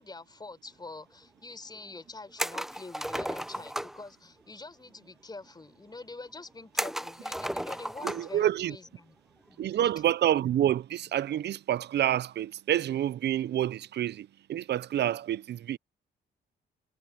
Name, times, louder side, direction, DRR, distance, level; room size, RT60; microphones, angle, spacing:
voice 1, 0.0-9.9, left 3 dB, 20° left, 4.8 m, -46 dB
sound 1, 2.4-4.0 6.8-8.4 8.7-8.8 10.4-10.7, equal, ahead, 0.8 m, -34 dB
voice 2, 8.0-8.7 9.6-15.8, right 11 dB, 60° right, 0.6 m, -28 dB
cardioid pair, 90°, 20 cm